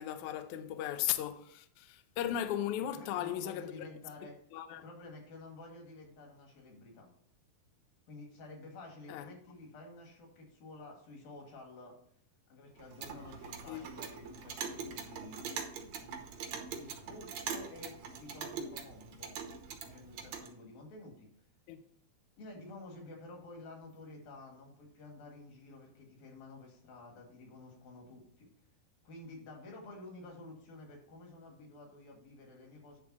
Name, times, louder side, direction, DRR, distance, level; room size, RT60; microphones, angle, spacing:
voice 1, 0.0-3.9 4.5-4.8 9.1-9.3 13.7-13.9 21.7-21.8, left 11 dB, 90° left, 1.7 m, -36 dB
voice 2, 2.8-4.4 4.8-7.1 8.1-12.0 12.5-15.5 16.0-16.4 16.7-19.4 19.8-21.3 22.4-28.5 29.0-33.0, left 2 dB, 70° left, 3.8 m, -51 dB
Clock, 12.8-20.5, right 6 dB, 65° right, 1.8 m, -43 dB
10.0 x 3.5 x 6.2 m
omnidirectional pair, 4.2 m